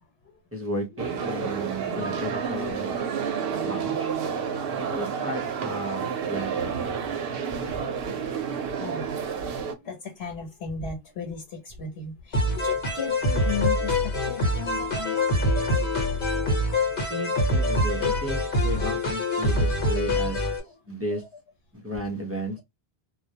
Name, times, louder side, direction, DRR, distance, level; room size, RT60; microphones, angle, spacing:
voice 1, 0.0-0.4 5.4-5.5 7.5-7.8 8.4-8.5 8.8-15.3 19.3-19.6 20.6-20.8 21.1-21.4, left 5 dB, 85° left, 1.0 m, -37 dB
voice 2, 0.5-3.1 3.6-4.2 4.8-6.8 17.1-20.4 20.9-21.2 21.7-22.6, equal, 20° right, 0.5 m, -33 dB
sound 1, 1.0-9.7, right 6 dB, 70° right, 0.7 m, -30 dB
sound 2, 12.3-20.6, left 1 dB, 60° left, 1.1 m, -25 dB
2.2 x 2.0 x 2.7 m
omnidirectional pair, 1.0 m